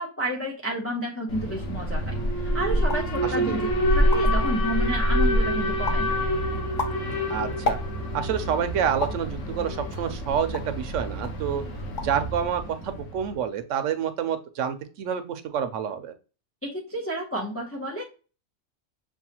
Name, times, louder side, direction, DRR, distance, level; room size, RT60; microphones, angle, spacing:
voice 1, 0.0-2.2 2.4-6.1 16.6-18.0, right 1 dB, 15° left, -2 dB, 0.7 m, -31 dB
Alarm, 1.3-13.3, equal, 90° left, 1.5 m, -26 dB
sound 1, 2.8-3.2 3.7-3.8 4.0-4.5 5.0-5.4 5.9-6.1 6.6-8.2 9.0-9.3 9.9-10.8 11.2-11.4 11.8-12.3 12.5-13.0, left 3 dB, 45° left, 0.7 m, -33 dB
voice 2, 7.3-7.8 8.1-11.6 12.0-16.1, right 8 dB, 80° right, 9 dB, 1.0 m, -28 dB
6.2 x 2.3 x 2.9 m, 0.34 s
omnidirectional pair, 1.2 m